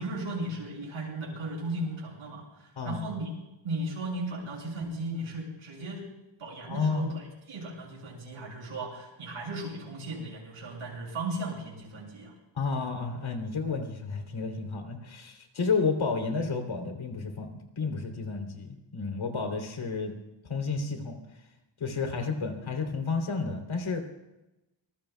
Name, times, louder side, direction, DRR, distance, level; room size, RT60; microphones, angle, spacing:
voice 1, 0.0-3.3 3.6-6.1 6.4-7.2 7.5-12.3, right 1 dB, 90° right, -1 dB, 6.7 m, -36 dB
voice 2, 6.6-7.1 12.5-20.1 20.5-21.2 21.8-24.0, left 4 dB, 75° left, 4 dB, 3.3 m, -31 dB
25.5 x 20.5 x 2.3 m, 0.96 s
wide cardioid pair, 155°, 47 cm